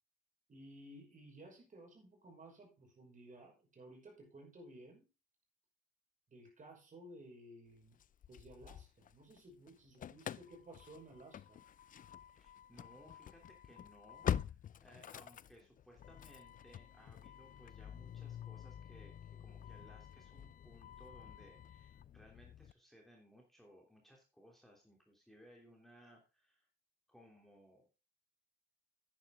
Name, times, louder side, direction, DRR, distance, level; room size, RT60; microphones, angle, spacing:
voice 1, 0.5-5.1 6.3-8.0 8.3-11.6, right 1 dB, 40° right, 1 dB, 5.8 m, -56 dB
Engine starting / Slam, 8.0-9.4 9.7-22.7, left 10 dB, 45° left, 0.4 m, -46 dB
voice 2, 12.3-19.1 19.4-26.7 27.1-27.9, equal, ahead, 0 dB, 3.1 m, -62 dB
9.9 x 9.9 x 3.7 m, 0.30 s
cardioid pair, 90°, 20 cm